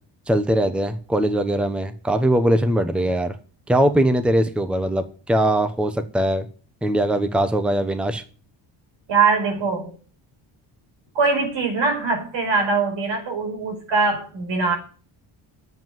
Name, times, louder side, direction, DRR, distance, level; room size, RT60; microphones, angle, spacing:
voice 1, 0.3-3.3 3.7-6.5 6.8-8.2, right 1 dB, ahead, 0.9 m, -21 dB
voice 2, 9.1-9.9 11.1-14.8, right 4 dB, 80° right, 5.1 m, -22 dB
10.5 x 7.9 x 9.1 m
cardioid pair, 155°, 44 cm